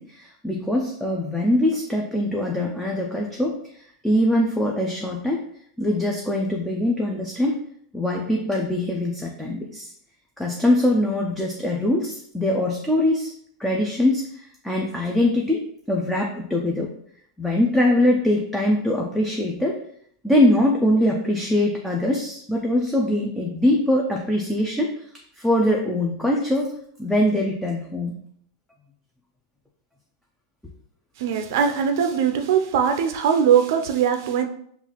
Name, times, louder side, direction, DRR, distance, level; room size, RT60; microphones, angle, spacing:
voice 1, 0.0-5.5 5.8-7.6 7.9-9.9 10.4-13.3 13.6-16.9 17.4-19.8 20.2-25.0 25.4-26.7 27.0-28.2, left 1 dB, 5° left, -1 dB, 0.4 m, -22 dB
voice 2, 31.2-34.5, right 8 dB, 55° right, 6 dB, 0.5 m, -21 dB
5.5 x 2.4 x 2.9 m, 0.65 s
supercardioid pair, 165°, 2 cm